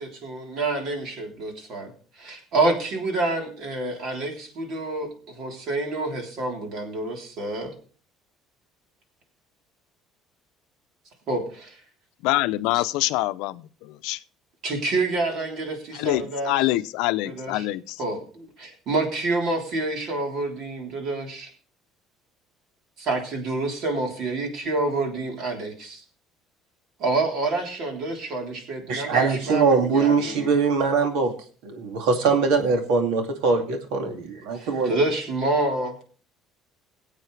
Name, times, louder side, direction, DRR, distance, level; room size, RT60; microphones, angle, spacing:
voice 1, 0.0-7.7 11.3-11.8 12.7-12.8 14.6-16.7 17.2-17.7 18.0-21.5 23.0-26.0 27.0-30.5 34.5-36.0, right 2 dB, 55° right, 2 dB, 3.5 m, -28 dB
voice 2, 12.2-14.2 15.9-18.0, left 17 dB, 90° left, 13 dB, 0.6 m, -25 dB
voice 3, 28.9-31.3 31.6-34.9, right 4 dB, 85° right, 4 dB, 2.3 m, -22 dB
21.0 x 8.3 x 3.3 m, 0.42 s
cardioid pair, 155°, 0 cm